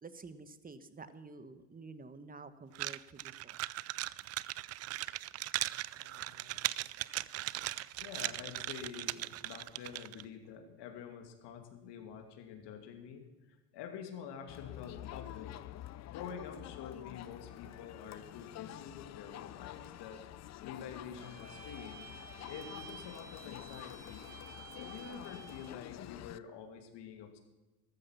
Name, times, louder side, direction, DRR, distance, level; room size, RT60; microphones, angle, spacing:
voice 1, 0.0-3.6, right 4 dB, 20° right, 12 dB, 1.2 m, -50 dB
sound 1, 2.7-10.2, right 16 dB, 35° right, 0.4 m, -38 dB
voice 2, 5.9-6.7 8.0-15.5 16.1-20.2 20.6-22.1 22.5-24.3 24.8-27.4, left 7 dB, 55° left, 5 dB, 2.6 m, -48 dB
Crowd, 14.5-26.4, left 13 dB, 35° left, 0.6 m, -48 dB
Bowed string instrument, 21.2-25.8, right 6 dB, 55° right, 5.2 m, -52 dB
13.5 x 13.5 x 5.9 m, 1.1 s
hypercardioid pair, 75°, 48 cm